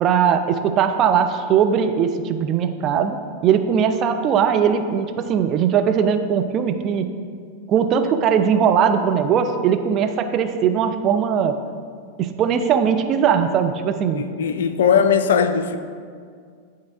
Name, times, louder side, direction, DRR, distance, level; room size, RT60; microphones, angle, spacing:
voice 1, 0.0-3.2 3.4-7.1 7.7-11.6 12.2-14.3, right 7 dB, 35° right, 0.4 m, -19 dB
voice 2, 14.1-15.8, left 7 dB, 60° left, 0.3 m, -19 dB
9.2 x 3.2 x 3.5 m
figure-of-eight pair, 90°, 0 cm